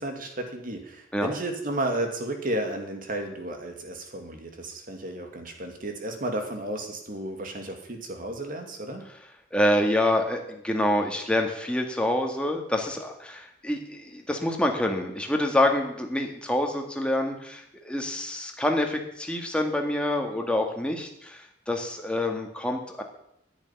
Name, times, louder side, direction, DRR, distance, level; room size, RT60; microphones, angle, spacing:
voice 1, 0.0-9.0, right 1 dB, 50° right, 4 dB, 2.5 m, -33 dB
voice 2, 9.5-23.0, left 1 dB, 5° left, 2 dB, 2.0 m, -27 dB
10.5 x 9.4 x 10.0 m, 0.78 s
head